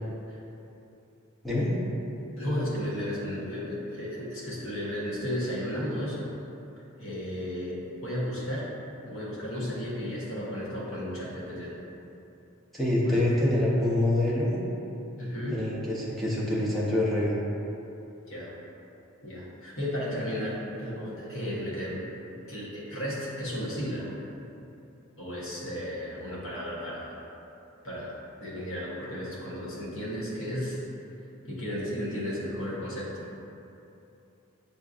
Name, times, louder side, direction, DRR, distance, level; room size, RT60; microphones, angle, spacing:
voice 1, 2.4-6.2 7.0-8.7 9.0-11.7 13.0-13.5 15.2-15.6 18.3-18.5 19.2-22.0 22.5-24.1 25.2-27.2 27.8-28.1 28.4-30.8 31.4-33.2, equal, 60° left, -7 dB, 1.0 m, -34 dB
voice 2, 12.7-14.5 15.5-17.3, left 1 dB, ahead, -7 dB, 0.5 m, -25 dB
6.7 x 2.5 x 2.4 m, 2.9 s
head